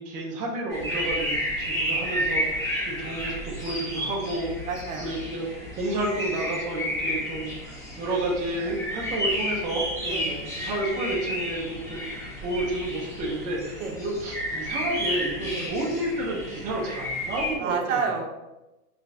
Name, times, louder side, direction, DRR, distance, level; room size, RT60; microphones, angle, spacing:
voice 1, 0.0-4.5 5.0-5.5 5.8-10.4 10.6-18.0, right 1 dB, 20° right, -3 dB, 0.5 m, -31 dB
sound 1, 0.7-17.5, equal, 5° left, 0.9 m, -31 dB
voice 2, 4.7-5.2 10.1-10.5 13.8-14.0 15.5-15.7 17.6-18.3, right 5 dB, 60° right, 3 dB, 0.7 m, -29 dB
3.2 x 2.2 x 3.9 m, 0.99 s
hypercardioid pair, 120°, 44 cm